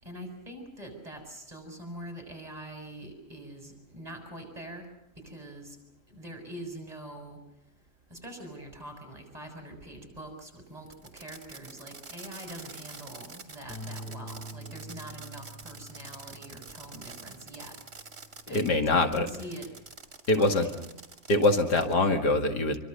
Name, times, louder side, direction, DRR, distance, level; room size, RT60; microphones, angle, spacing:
voice 1, 0.0-4.9 5.2-5.8 6.1-7.4 8.1-10.9 11.1-17.7 18.5-19.7 20.3-20.8, right 1 dB, 25° right, 4 dB, 7.0 m, -44 dB
Fireworks, 10.9-18.7 19.1-22.0, right 4 dB, 50° right, 2.7 m, -47 dB
sound 1, 13.7-19.9, right 1 dB, 5° left, 1.9 m, -47 dB
voice 2, 18.5-19.3 20.3-20.7 21.3-22.8, left 2 dB, 85° left, 6 dB, 2.6 m, -24 dB
26.5 x 24.5 x 6.7 m, 0.85 s
omnidirectional pair, 1.7 m